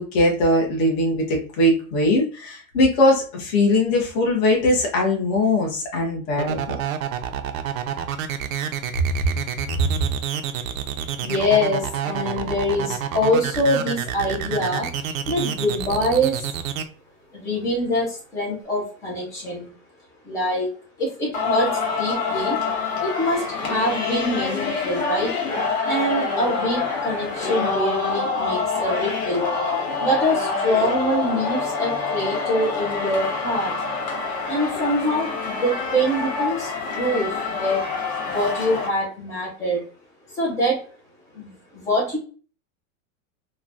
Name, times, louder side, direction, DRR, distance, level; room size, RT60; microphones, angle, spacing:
voice 1, 0.0-6.8 9.7-9.9, left 1 dB, 35° left, -1 dB, 0.9 m, -20 dB
sound 1, 6.4-16.8, right 10 dB, 80° right, 0.6 m, -28 dB
voice 2, 11.2-14.9 15.3-16.4 17.3-19.7 20.2-20.7 21.0-22.6 23.0-25.3 25.9-29.5 30.0-33.7 34.5-37.9 38.3-39.8 40.3-40.8 41.3-42.2, equal, 10° left, -4 dB, 0.3 m, -24 dB
Singing, 21.3-38.9, left 4 dB, 80° left, 1.4 m, -26 dB
3.1 x 2.1 x 2.5 m, 0.38 s
supercardioid pair, 165°, 40 cm